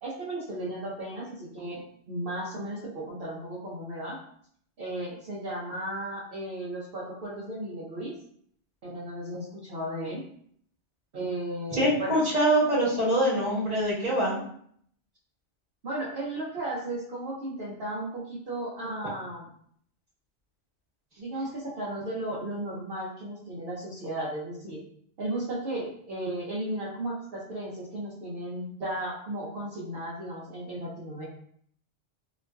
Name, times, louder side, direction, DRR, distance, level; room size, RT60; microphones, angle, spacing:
voice 1, 0.0-4.2 4.8-8.1 8.8-10.2 11.1-12.2 15.8-19.5 21.2-24.8 25.2-31.2, right 1 dB, 55° right, -7 dB, 0.9 m, -35 dB
voice 2, 11.8-14.4, right 1 dB, 35° right, -9 dB, 1.5 m, -24 dB
2.9 x 2.6 x 2.2 m, 0.64 s
omnidirectional pair, 1.2 m